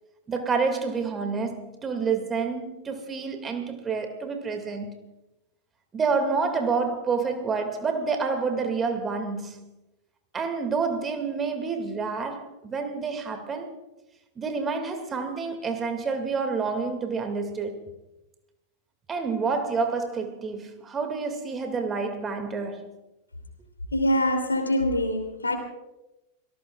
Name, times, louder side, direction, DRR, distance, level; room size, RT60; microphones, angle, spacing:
voice 1, 0.3-5.1 5.9-9.7 10.3-13.8 14.4-17.9 19.1-22.9, right 4 dB, 20° right, 2.2 m, -28 dB
voice 2, 23.9-25.6, left 1 dB, 80° left, 3.0 m, -24 dB
26.5 x 18.0 x 2.4 m
figure-of-eight pair, 90°, 0 cm